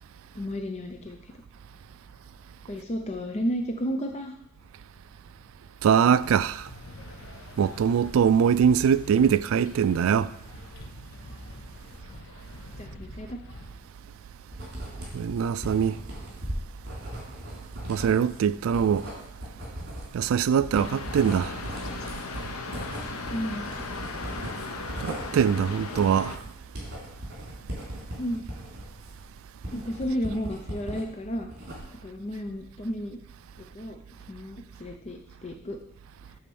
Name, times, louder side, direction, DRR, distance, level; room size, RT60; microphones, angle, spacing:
voice 1, 0.3-1.3 2.7-4.3 12.8-13.4 23.3-23.7 28.2-28.4 29.7-31.5 32.0-33.2 33.7-34.0 34.3-35.8, equal, 30° left, 0.5 m, -32 dB
voice 2, 5.8-6.7 7.6-10.3 15.1-16.0 17.9-19.1 20.1-21.6 25.0-26.4, right 7 dB, 65° right, 0.3 m, -22 dB
sound 1, 6.2-13.7, left 1 dB, 70° left, 1.1 m, -45 dB
Writing, 14.5-31.0 31.4-32.1, equal, 50° right, 3.5 m, -38 dB
sound 2, 20.7-26.4, left 3 dB, 90° left, 0.8 m, -37 dB
8.5 x 4.2 x 7.0 m
head